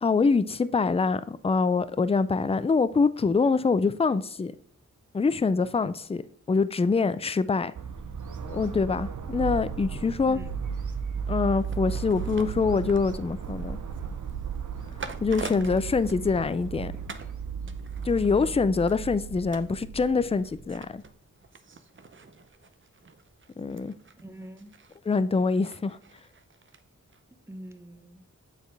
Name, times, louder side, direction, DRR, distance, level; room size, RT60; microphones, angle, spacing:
voice 1, 0.0-4.5 5.1-6.2 6.5-7.7 8.4-10.4 11.3-13.8 15.2-16.9 18.0-21.0 23.6-23.9 25.1-26.0, left 4 dB, 20° left, 0.4 m, -25 dB
sound 1, 7.7-20.9, right 6 dB, 70° right, 0.7 m, -35 dB
sound 2, 11.6-16.8 17.1-17.4 17.7-26.8 27.1-27.2, right 4 dB, 40° right, 0.6 m, -46 dB
voice 2, 18.3-18.6 24.2-24.8 27.5-28.2, right 1 dB, 10° right, 0.9 m, -44 dB
7.1 x 4.3 x 3.3 m
cardioid pair, 50°, 32 cm